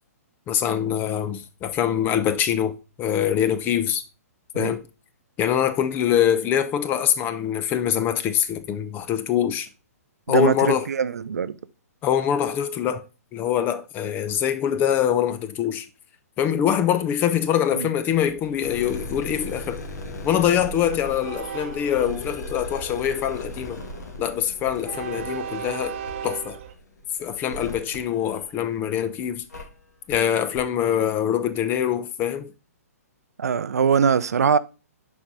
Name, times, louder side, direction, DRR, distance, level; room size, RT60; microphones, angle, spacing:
voice 1, 0.5-4.0 4.5-4.8 5.4-9.7 10.3-10.9 12.0-13.0 13.3-15.9 16.4-19.8 20.2-23.8 24.2-25.9 26.2-26.6 27.2-29.4 30.1-32.5, left 9 dB, 20° left, 0.6 m, -24 dB
voice 2, 10.3-11.6 17.7-17.9 33.4-34.6, right 6 dB, 80° right, 0.5 m, -22 dB
Train, 18.1-26.7, right 8 dB, 45° right, 0.8 m, -39 dB
sound 1, 18.5-28.9 29.5-29.6 30.1-30.2 30.5-30.6, left 2 dB, 85° left, 2.2 m, -38 dB
6.9 x 4.9 x 3.9 m
hypercardioid pair, 135°, 9 cm